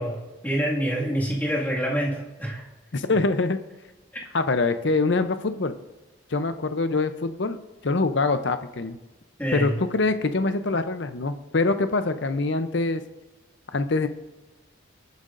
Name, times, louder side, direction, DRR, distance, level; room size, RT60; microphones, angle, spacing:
voice 1, 0.0-2.6 4.1-4.2 9.4-9.7, equal, 10° left, -4 dB, 2.0 m, -27 dB
voice 2, 2.9-3.6 4.3-5.7 6.3-7.6 7.8-9.0 9.5-13.0 13.7-14.1, left 3 dB, 55° left, 10 dB, 0.6 m, -24 dB
26.5 x 9.4 x 2.6 m, 1.2 s
head